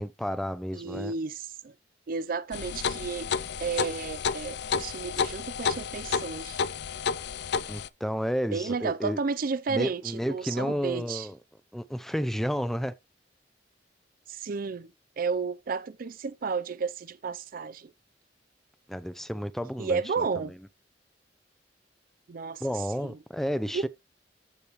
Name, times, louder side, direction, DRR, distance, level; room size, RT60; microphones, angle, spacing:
voice 1, 0.0-1.1 7.7-9.2 9.7-11.4 11.7-12.9 18.9-20.3 22.6-23.9, equal, ahead, 0.6 m, -31 dB
voice 2, 0.7-1.7 2.1-3.3 3.6-6.6 8.5-11.3 14.3-17.9 19.8-20.5 22.3-23.2 23.7-23.9, right 5 dB, 50° right, 0.5 m, -32 dB
sound 1, 2.5-7.9, left 6 dB, 65° left, 0.5 m, -31 dB
14.0 x 5.0 x 3.0 m
head